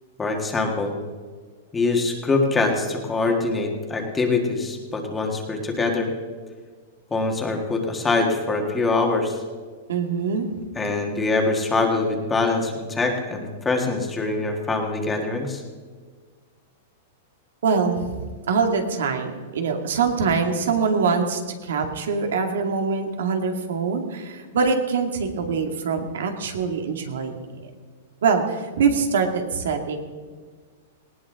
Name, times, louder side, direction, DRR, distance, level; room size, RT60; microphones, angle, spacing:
voice 1, 0.2-1.0 1.7-6.1 7.1-9.4 10.8-15.6, left 3 dB, 10° left, 2 dB, 1.7 m, -24 dB
voice 2, 9.9-10.5 17.6-18.2 18.5-27.7 28.2-30.0, right 5 dB, 85° right, 4 dB, 2.3 m, -24 dB
19.0 x 18.0 x 3.8 m, 1.5 s
supercardioid pair, 170°, 0 cm